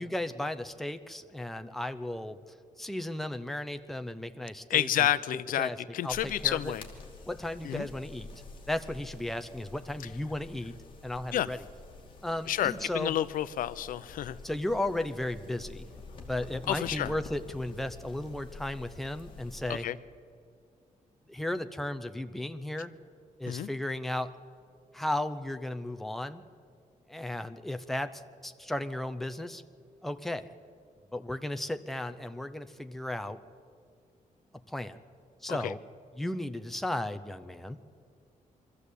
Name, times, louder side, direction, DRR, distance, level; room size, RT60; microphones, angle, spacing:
voice 1, 0.0-2.4 2.8-5.1 5.6-5.8 6.0-6.7 7.3-8.3 8.7-10.8 11.0-11.6 12.2-13.2 14.4-15.9 16.3-19.9 21.3-22.9 23.4-24.4 24.9-26.4 27.1-29.6 30.0-30.5 31.1-33.4 34.7-35.0 35.4-35.8 36.2-37.8, left 1 dB, ahead, 8 dB, 0.6 m, -35 dB
voice 2, 4.7-6.9 7.6-7.9 11.3-11.5 12.5-14.4 16.7-17.1 19.7-20.0 23.5-23.7 35.5-35.7, left 12 dB, 85° left, 15 dB, 0.6 m, -30 dB
sound 1, 6.1-19.8, left 3 dB, 35° left, 2.5 m, -48 dB
23.0 x 14.0 x 8.3 m, 2.3 s
wide cardioid pair, 165°, 14 cm